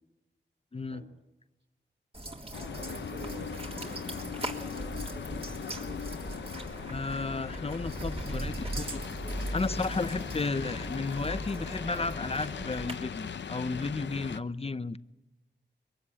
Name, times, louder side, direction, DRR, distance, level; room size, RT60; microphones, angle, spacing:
voice 1, 0.7-1.0 6.9-9.0 9.5-15.0, left 3 dB, 30° left, 14 dB, 0.8 m, -33 dB
sound 1, 2.1-12.9, right 1 dB, 30° right, 3.2 m, -39 dB
sound 2, 2.5-14.4, left 7 dB, 70° left, 0.7 m, -40 dB
voice 2, 2.8-5.2, right 3 dB, 70° right, 6 dB, 3.6 m, -49 dB
22.5 x 15.5 x 10.0 m, 1.0 s
wide cardioid pair, 70°, 19 cm